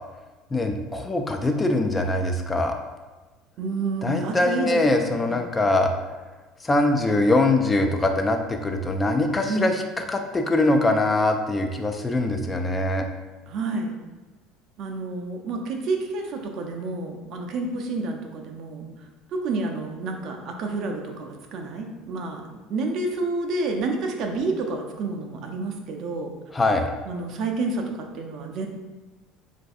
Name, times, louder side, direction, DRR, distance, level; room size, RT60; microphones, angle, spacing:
voice 1, 0.5-2.7 4.0-5.9 6.6-13.0 26.5-26.9, left 2 dB, 20° left, 4 dB, 0.3 m, -22 dB
voice 2, 3.6-5.4 9.5-9.7 13.5-13.9 14.8-22.4 22.7-26.3 27.1-28.7, right 3 dB, 50° right, 3 dB, 0.4 m, -29 dB
3.9 x 2.5 x 2.3 m, 1.2 s
figure-of-eight pair, 65°, 0 cm